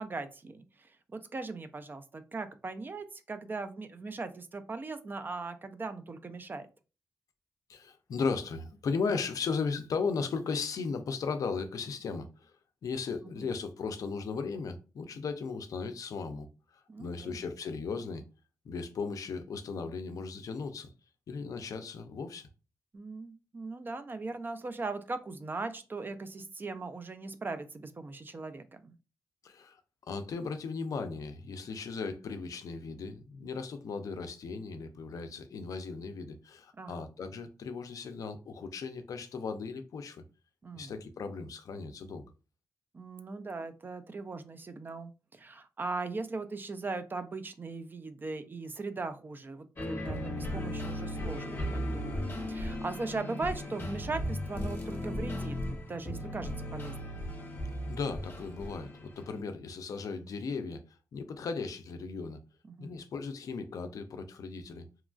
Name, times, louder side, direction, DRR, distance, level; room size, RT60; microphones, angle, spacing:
voice 1, 0.0-6.7 13.4-13.5 16.9-17.4 22.9-28.9 36.8-37.1 40.6-40.9 42.9-57.2 62.8-62.9, right 3 dB, 35° right, 0.4 m, -39 dB
voice 2, 7.7-12.5 12.8-18.2 18.6-20.9 21.3-22.5 29.4-29.8 30.1-40.2 40.7-42.3 57.9-60.8 61.1-62.4 62.8-64.9, left 4 dB, 70° left, 0.4 m, -36 dB
sound 1, 49.8-59.4, left 1 dB, 35° left, 0.9 m, -36 dB
2.9 x 2.3 x 2.3 m
cardioid pair, 80°, 6 cm